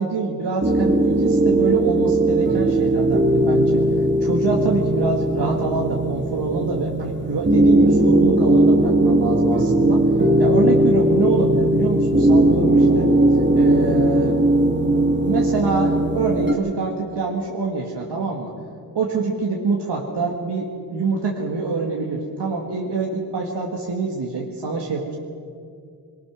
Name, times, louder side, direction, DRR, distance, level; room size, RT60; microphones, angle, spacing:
voice 1, 0.0-3.8 4.2-10.0 10.4-13.1 13.5-14.4 14.8-18.5 18.9-25.2, right 4 dB, 70° right, -1 dB, 2.1 m, -25 dB
sound 1, 0.6-16.5, right 1 dB, 25° right, 1.7 m, -18 dB
23.0 x 18.5 x 6.2 m, 2.3 s
wide cardioid pair, 100°, 43 cm